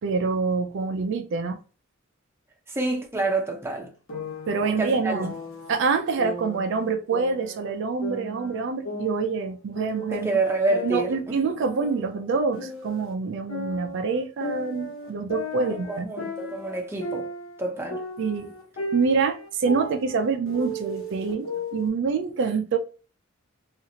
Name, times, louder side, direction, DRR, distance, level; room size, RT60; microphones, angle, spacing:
voice 1, 0.0-1.6 4.5-5.3 5.7-10.3 10.8-16.1 18.2-18.5 18.9-22.8, right 4 dB, 60° right, 0.4 m, -26 dB
voice 2, 2.7-3.9 4.6-5.2 10.1-11.2 15.6-17.3 17.6-18.0, right 2 dB, 10° right, 0.6 m, -27 dB
sound 1, 4.1-5.7 6.2-7.7 8.0-10.3 10.7-13.1 13.5-17.6 17.9-21.9, equal, 75° left, 1.3 m, -35 dB
2.8 x 2.5 x 2.8 m
head